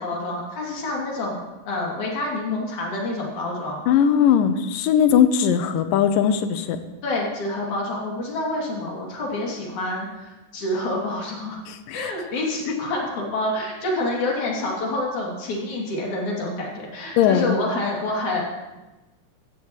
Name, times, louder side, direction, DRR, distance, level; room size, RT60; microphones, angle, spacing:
voice 1, 0.0-3.8 7.0-11.6 11.9-18.4, left 2 dB, 60° left, -3 dB, 4.1 m, -27 dB
voice 2, 3.9-6.8 11.7-12.1 17.2-17.6, left 8 dB, 85° left, 9 dB, 2.4 m, -19 dB
15.5 x 14.0 x 3.2 m, 1.1 s
omnidirectional pair, 4.0 m